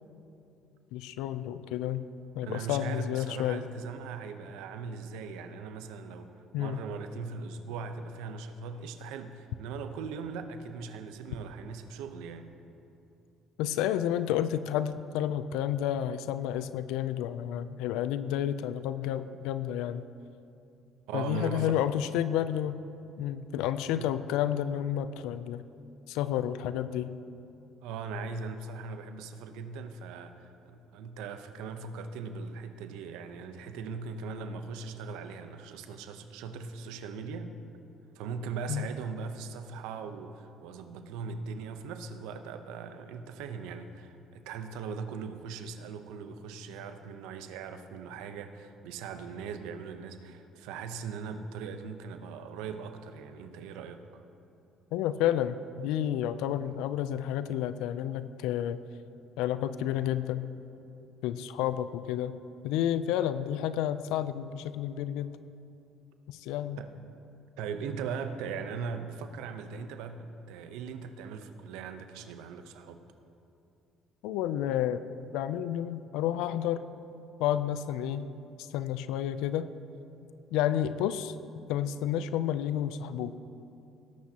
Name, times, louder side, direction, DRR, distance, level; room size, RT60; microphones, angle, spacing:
voice 1, 0.9-2.1 2.3-3.7 6.5-6.8 13.6-20.0 21.1-22.8 23.2-25.6 26.1-27.2 38.7-38.9 54.9-58.8 59.4-60.5 61.2-62.4 62.6-65.4 66.3-66.8 74.2-75.0 75.3-76.8 77.4-78.3 78.6-79.7 80.5-81.3 81.7-83.4, left 11 dB, 85° left, 13 dB, 0.4 m, -30 dB
voice 2, 2.4-12.5 21.1-21.8 23.9-24.1 27.8-37.5 38.1-54.0 66.8-66.9 67.6-73.0, right 5 dB, 85° right, 8 dB, 0.8 m, -39 dB
19.5 x 11.5 x 2.9 m, 2.7 s
supercardioid pair, 75°, 0 cm